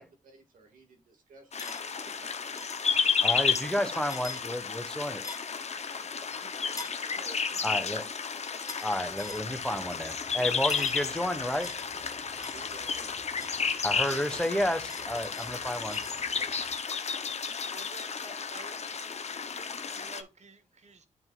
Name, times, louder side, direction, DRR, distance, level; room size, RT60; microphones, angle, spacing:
voice 1, 0.0-2.3 6.0-8.1 9.5-9.6 12.5-13.1, right 4 dB, 85° right, 2.1 m, -54 dB
sound 1, 1.5-20.2, left 6 dB, 55° left, 0.8 m, -32 dB
sound 2, 1.6-1.8 2.6-2.8 4.1-4.4 5.2-5.6 6.8-7.0 8.7-8.9 9.2-9.5 10.7-11.0 11.6-13.0 13.4-16.2, left 3 dB, 25° left, 1.3 m, -44 dB
voice 2, 3.2-5.2 7.6-8.0 8.8-11.7 13.8-16.0, equal, 5° left, 1.2 m, -31 dB
voice 3, 5.7-6.1 17.6-19.0 19.5-21.1, right 4 dB, 55° right, 1.3 m, -51 dB
sound 3, 9.0-16.8, right 2 dB, 40° right, 1.7 m, -55 dB
11.0 x 3.9 x 2.4 m
cardioid pair, 60°, 14 cm